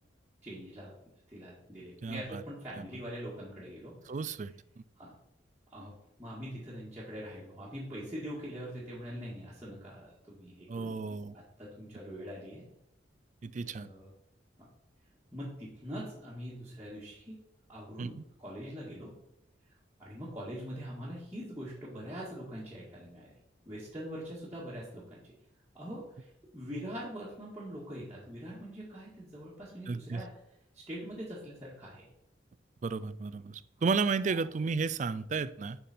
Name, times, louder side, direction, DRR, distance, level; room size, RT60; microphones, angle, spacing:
voice 1, 0.4-0.9 1.3-4.0 5.0-5.1 5.7-5.9 6.2-10.9 11.3-12.7 13.6-14.1 15.3-17.4 17.7-19.1 20.0-23.3 23.7-25.2 25.7-30.3 30.7-32.1 33.8-33.9 34.3-34.4, equal, 10° right, 1.8 m, -43 dB
voice 2, 2.0-2.4 2.8-2.9 4.1-4.5 10.7-11.3 13.4-13.9 18.0-18.1 29.9-30.2 32.8-35.8, right 4 dB, 40° right, 0.3 m, -33 dB
8.3 x 5.6 x 4.3 m
head